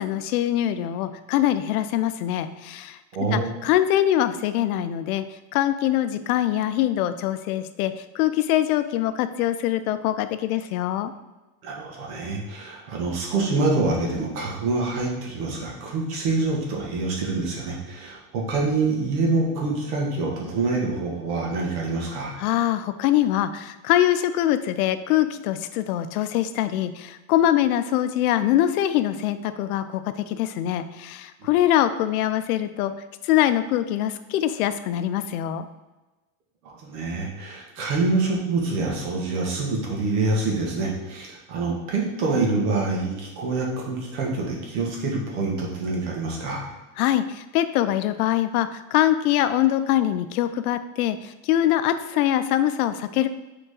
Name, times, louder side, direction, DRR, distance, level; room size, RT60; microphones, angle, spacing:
voice 1, 0.0-3.0 3.3-5.2 5.5-11.1 22.4-32.9 33.2-35.7 47.0-53.3, left 12 dB, 75° left, 11 dB, 0.6 m, -23 dB
voice 2, 3.1-3.5 11.6-22.3 36.6-46.6, right 3 dB, 70° right, -1 dB, 2.0 m, -26 dB
6.7 x 4.0 x 3.9 m, 1.1 s
supercardioid pair, 160°, 45 cm